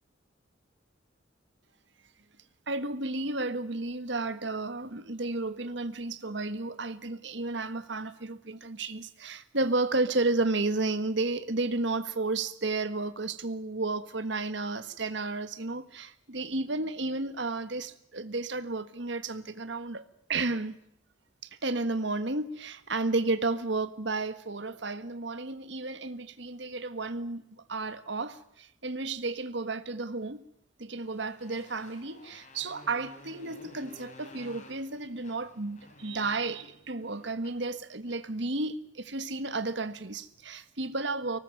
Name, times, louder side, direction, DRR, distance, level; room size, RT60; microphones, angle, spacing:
voice 1, 2.7-20.8 21.4-27.4 27.7-30.4 30.8-41.4, right 3 dB, 60° right, 1.5 m, -32 dB
Motorcycle, 30.9-38.3, left 1 dB, 40° left, 4.9 m, -53 dB
24.0 x 19.5 x 9.1 m
head